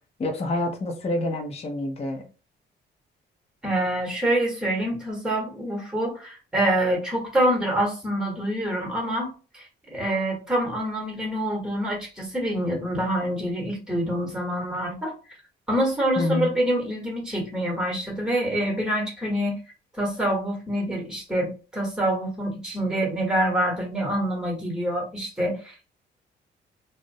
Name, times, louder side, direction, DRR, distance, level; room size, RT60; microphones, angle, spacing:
voice 1, 0.2-2.2 16.2-16.5, left 2 dB, 30° left, 0.6 m, -27 dB
voice 2, 3.6-15.2 15.7-19.5 20.0-25.9, right 1 dB, 5° right, 1.1 m, -26 dB
2.4 x 2.0 x 2.6 m
cardioid pair, 90°, 20 cm